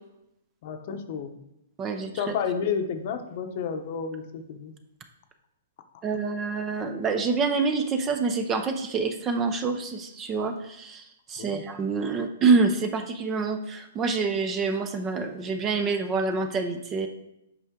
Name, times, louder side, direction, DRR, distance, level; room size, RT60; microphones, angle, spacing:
voice 1, 0.6-1.3 2.1-4.7 11.4-11.6, left 6 dB, 45° left, 7 dB, 0.8 m, -31 dB
voice 2, 1.8-2.3 6.0-17.1, right 4 dB, 15° right, 7 dB, 0.5 m, -26 dB
8.1 x 5.5 x 3.7 m, 0.85 s
hypercardioid pair, 160°, 0 cm